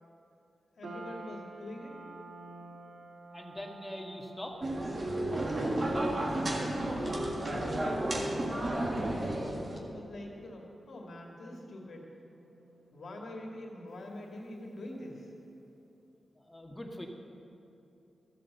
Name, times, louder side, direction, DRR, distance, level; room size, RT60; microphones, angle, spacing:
voice 1, 0.8-2.0 6.2-9.4 9.9-12.1 12.9-15.3, left 1 dB, 70° left, 0 dB, 2.0 m, -45 dB
sound 1, 0.8-15.2, right 2 dB, 80° right, 1.4 m, -53 dB
voice 2, 3.3-4.6 16.3-17.1, left 1 dB, 15° left, 1 dB, 1.8 m, -42 dB
sound 2, 4.6-9.8, right 1 dB, 45° right, 1.8 m, -32 dB
13.5 x 7.5 x 6.7 m, 2.8 s
cardioid pair, 50°, 0 cm